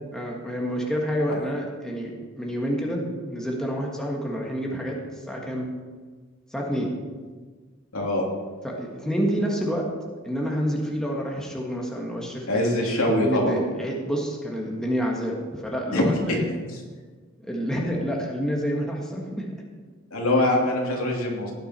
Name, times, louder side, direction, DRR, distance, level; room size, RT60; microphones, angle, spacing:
voice 1, 0.1-2.1 2.4-5.0 5.3-5.7 6.5-6.9 8.6-9.9 10.2-12.8 13.2-16.5 17.4-19.5, equal, 5° left, -2 dB, 1.7 m, -28 dB
voice 2, 7.9-8.2 12.5-13.5 15.9-16.4 20.1-21.5, left 1 dB, 70° left, -1 dB, 2.9 m, -23 dB
17.5 x 9.4 x 4.4 m, 1.4 s
head